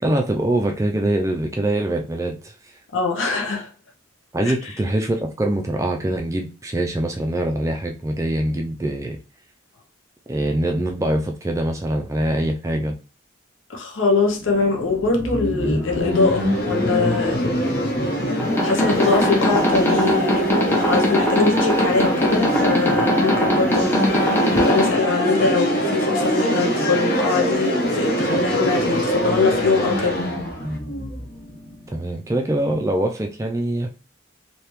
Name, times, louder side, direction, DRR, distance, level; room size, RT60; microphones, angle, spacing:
voice 1, 0.0-2.8 4.3-9.2 10.3-12.9 31.9-33.9, right 1 dB, 15° right, 0.3 m, -23 dB
voice 2, 2.9-3.7 13.7-17.7 18.6-30.2, left 4 dB, 75° left, 0.8 m, -22 dB
sound 1, 14.2-32.0, equal, 45° left, 1.0 m, -24 dB
sound 2, 18.4-24.9, equal, 10° left, 0.7 m, -22 dB
3.4 x 2.8 x 3.0 m
head